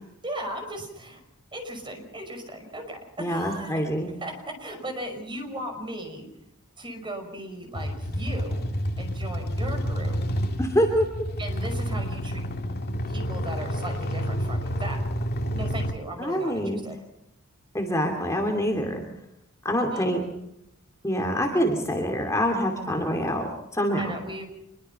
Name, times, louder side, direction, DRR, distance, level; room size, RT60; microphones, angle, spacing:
voice 1, 0.2-1.2 1.5-3.9 4.2-6.3 6.8-10.2 11.4-12.5 13.1-15.0 15.5-17.0 19.9-20.1 24.0-24.5, right 1 dB, 20° right, 5 dB, 5.6 m, -37 dB
voice 2, 3.2-4.1 10.6-11.1 16.2-16.8 17.7-19.0 19.6-20.2 21.0-24.2, equal, 15° left, 3 dB, 2.7 m, -25 dB
sound 1, 7.7-15.9, equal, 45° left, 2.1 m, -29 dB
26.0 x 22.5 x 5.8 m, 0.82 s
head